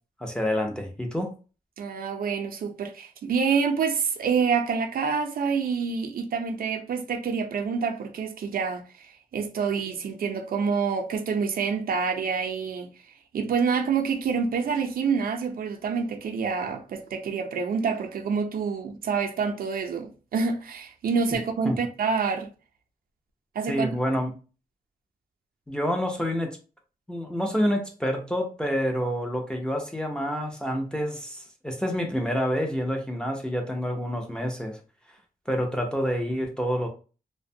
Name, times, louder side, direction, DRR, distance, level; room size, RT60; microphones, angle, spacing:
voice 1, 0.2-1.3 21.3-21.4 21.6-21.8 23.7-24.3 25.7-26.6 27.1-34.8 35.5-36.9, equal, 5° left, 0.4 m, -28 dB
voice 2, 1.8-12.9 13.3-22.5 23.6-24.0, right 5 dB, 75° right, 0.4 m, -27 dB
2.6 x 2.1 x 2.6 m
wide cardioid pair, 175°, 15 cm